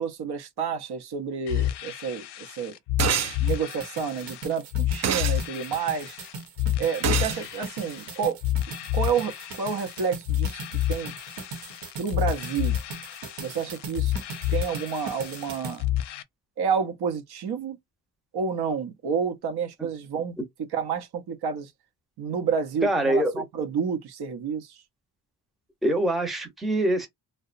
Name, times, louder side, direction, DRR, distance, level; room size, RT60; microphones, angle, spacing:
voice 1, 0.0-2.8 3.4-6.2 6.8-8.4 8.9-10.6 10.9-11.1 12.0-12.8 13.4-14.2 14.5-15.9 16.6-17.8 18.3-20.4 20.7-21.7 22.2-24.8, right 6 dB, 65° right, 0.7 m, -29 dB
sound 1, 1.5-16.2, left 13 dB, 70° left, 0.5 m, -30 dB
sound 2, 3.0-3.4 5.0-5.4 7.0-7.4, right 8 dB, 40° right, 0.4 m, -25 dB
sound 3, 3.5-15.8, right 4 dB, 85° right, 1.0 m, -40 dB
voice 2, 22.8-23.4 25.8-27.1, right 1 dB, ahead, 0.6 m, -24 dB
2.8 x 2.1 x 2.5 m
cardioid pair, 125°, 42 cm